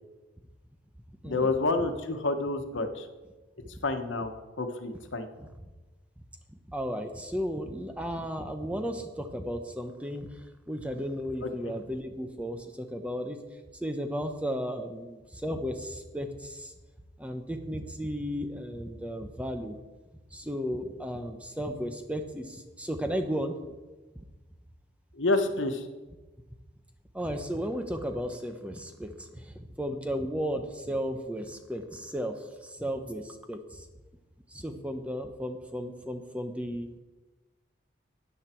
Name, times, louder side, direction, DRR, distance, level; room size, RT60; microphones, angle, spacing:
voice 1, 1.2-3.1 3.8-5.3 11.6-11.7 25.1-25.9, left 2 dB, 85° left, 7 dB, 1.2 m, -29 dB
voice 2, 6.5-10.3 10.7-13.4 13.8-16.7 17.2-19.8 20.3-23.5 24.2-24.3 27.1-33.9 34.5-36.9, equal, 5° right, 6 dB, 0.8 m, -34 dB
13.0 x 9.1 x 4.5 m, 1.2 s
head